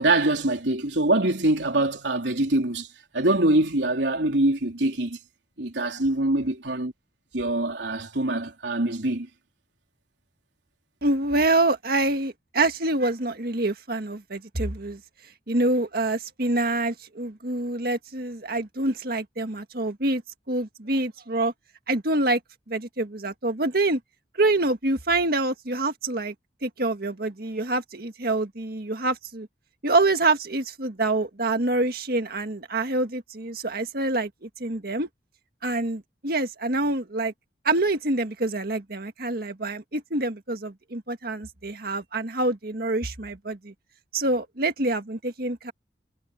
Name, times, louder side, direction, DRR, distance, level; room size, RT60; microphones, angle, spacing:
voice 1, 0.0-2.9 3.1-5.2 5.6-6.9 7.3-9.3, right 2 dB, 75° right, 3.6 m, -24 dB
voice 2, 11.0-15.0 15.5-20.2 20.5-21.5 21.9-22.4 22.7-24.0 24.4-26.3 26.6-29.5 29.8-35.1 35.6-37.3 37.7-43.7 44.1-45.7, right 2 dB, 55° right, 1.8 m, -26 dB
head